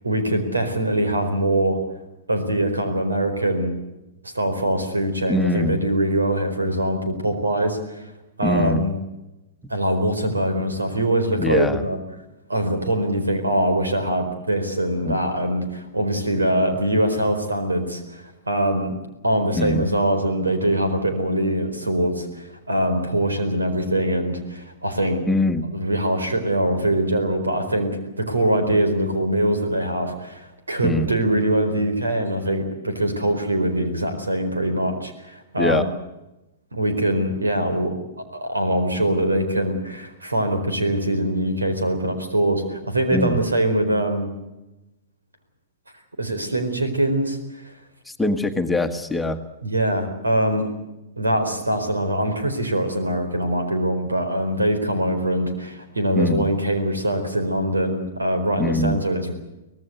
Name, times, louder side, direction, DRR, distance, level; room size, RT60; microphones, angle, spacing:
voice 1, 0.0-1.8 2.3-3.7 4.2-8.1 8.4-9.0 9.7-12.0 12.5-19.0 19.2-25.3 25.7-35.9 36.7-37.9 38.3-44.3 46.2-47.4 49.6-50.7 51.2-59.3, right 1 dB, 85° right, 7 dB, 4.5 m, -23 dB
voice 2, 5.3-5.8 8.4-8.8 11.4-11.8 15.0-15.1 19.5-19.9 25.3-25.7 30.8-31.1 35.6-35.8 43.1-43.4 48.2-49.4 56.1-56.5 58.6-59.0, left 2 dB, 5° left, 6 dB, 1.6 m, -22 dB
24.5 x 18.0 x 8.1 m, 0.97 s
figure-of-eight pair, 110°, 0 cm